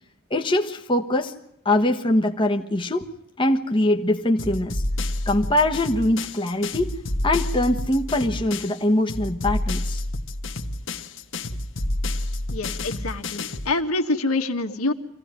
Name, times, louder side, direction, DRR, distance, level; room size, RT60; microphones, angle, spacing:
voice 1, 0.3-1.3 1.6-3.1 3.4-4.8 5.3-7.0 7.2-10.0, left 1 dB, 20° left, 4 dB, 1.2 m, -22 dB
sound 1, 4.4-8.8 9.1-13.7, left 1 dB, 60° left, 1.4 m, -29 dB
voice 2, 12.5-14.9, left 2 dB, 85° left, 4 dB, 1.9 m, -26 dB
25.5 x 16.5 x 9.0 m, 0.80 s
head